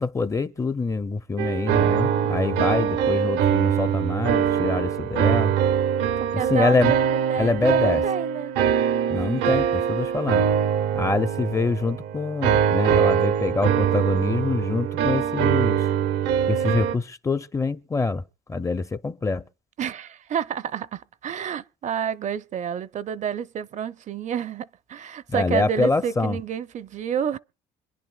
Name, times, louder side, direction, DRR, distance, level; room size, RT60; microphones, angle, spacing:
voice 1, 0.0-5.5 6.5-6.9 7.4-8.0 9.1-10.5 10.9-15.9 16.5-18.2 18.5-19.4 25.3-26.4, left 3 dB, 20° left, 0.5 m, -25 dB
sound 1, 1.4-17.0, right 8 dB, 90° right, 0.8 m, -23 dB
voice 2, 6.2-8.5 10.9-11.1 19.8-27.4, right 8 dB, 45° right, 0.5 m, -29 dB
26.0 x 10.5 x 2.3 m
cardioid pair, 110°, 17 cm